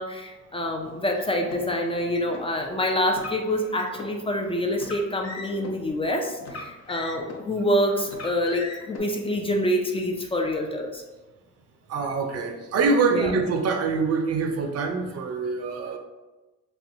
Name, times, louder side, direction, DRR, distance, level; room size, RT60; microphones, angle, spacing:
voice 1, 0.0-11.0 13.1-13.3, equal, 20° left, 2 dB, 0.4 m, -26 dB
Car, 1.4-2.4 3.1-4.1 4.7-5.7 6.4-7.5 8.1-9.0, left 3 dB, 60° left, 0.7 m, -39 dB
voice 2, 11.9-16.0, right 4 dB, 55° right, 5 dB, 0.6 m, -25 dB
4.1 x 2.2 x 2.6 m, 1.1 s
cardioid pair, 90°, 30 cm